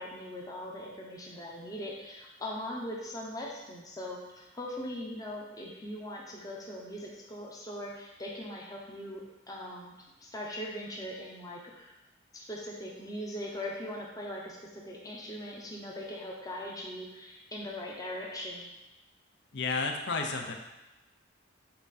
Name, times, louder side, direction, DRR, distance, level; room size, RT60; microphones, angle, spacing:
voice 1, 0.0-9.2 9.5-9.9 10.2-11.9 12.3-18.7, left 1 dB, 15° left, -3 dB, 0.8 m, -40 dB
voice 2, 19.5-20.6, left 4 dB, 55° left, 3 dB, 0.7 m, -31 dB
7.8 x 3.6 x 4.2 m, 0.98 s
head